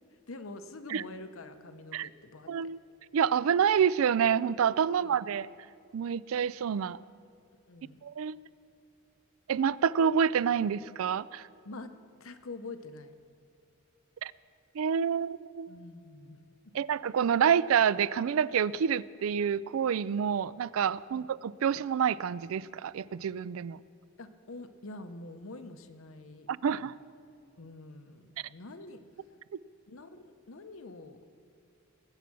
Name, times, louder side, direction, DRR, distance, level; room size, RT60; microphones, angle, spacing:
voice 1, 0.3-2.5 4.9-5.2 7.7-8.0 11.6-11.9 12.2-13.1 15.7-16.4 21.1-21.2 24.2-26.8 27.6-29.0 29.9-31.2, left 2 dB, 85° left, 9 dB, 0.9 m, -46 dB
voice 2, 2.5-2.8 3.1-5.5 5.9-7.0 8.0-8.4 9.5-11.5 14.2-14.3 14.7-15.7 16.7-23.8 26.5-26.9, right 7 dB, 90° right, 19 dB, 0.4 m, -28 dB
20.5 x 8.3 x 6.1 m, 2.4 s
head